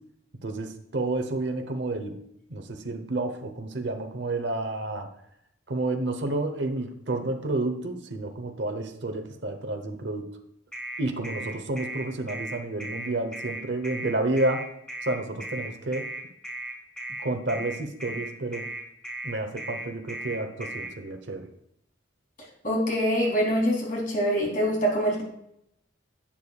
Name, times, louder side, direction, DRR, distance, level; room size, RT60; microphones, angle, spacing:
voice 1, 0.4-2.2 2.5-5.1 5.7-10.3 11.0-14.7 15.0-16.1 17.2-18.7 19.2-21.5, right 2 dB, 70° right, 7 dB, 0.9 m, -30 dB
sound 1, 10.7-20.9, right 1 dB, 5° left, 2.0 m, -36 dB
voice 2, 22.6-25.2, equal, 45° left, -2 dB, 3.0 m, -24 dB
10.0 x 8.2 x 2.4 m, 0.76 s
head